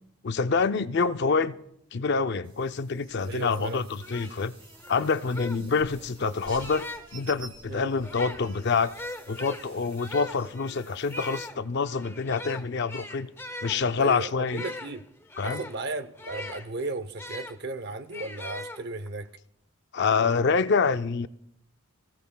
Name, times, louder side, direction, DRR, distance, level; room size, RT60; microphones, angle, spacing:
voice 1, 0.2-1.6 1.9-4.5 4.9-6.9 7.1-8.9 9.3-13.3 13.6-14.6 15.4-15.6 19.9-21.3, left 4 dB, 50° left, 0.5 m, -26 dB
sound 1, 2.4-11.5, right 3 dB, 25° right, 2.9 m, -51 dB
voice 2, 3.3-3.9 7.7-7.9 14.0-15.0 15.4-19.3, right 2 dB, 50° right, 0.7 m, -35 dB
sound 2, 4.0-7.2 7.9-17.6 18.1-19.2, left 1 dB, 10° left, 0.7 m, -41 dB
25.0 x 16.5 x 2.3 m
head